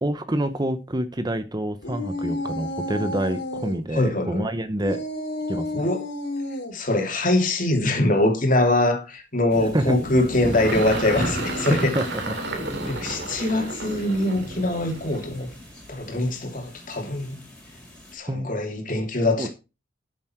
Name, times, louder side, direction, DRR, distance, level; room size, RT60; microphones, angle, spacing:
voice 1, 0.0-5.0 5.5-5.8 9.7-10.0 11.7-12.4 18.3-18.5 19.4-19.5, right 1 dB, 20° right, 0.8 m, -27 dB
sound 1, 1.8-3.8 4.8-6.7 10.6-12.8, left 1 dB, 75° left, 3.2 m, -32 dB
voice 2, 3.9-4.4 5.7-6.0 6.7-11.9 12.9-15.5 15.9-17.4 18.1-19.5, left 1 dB, 45° left, 2.8 m, -23 dB
sound 2, 9.5-18.1, equal, 5° left, 4.4 m, -37 dB
Engine, 9.6-16.2, right 3 dB, 65° right, 2.9 m, -34 dB
12.5 x 7.3 x 4.5 m
head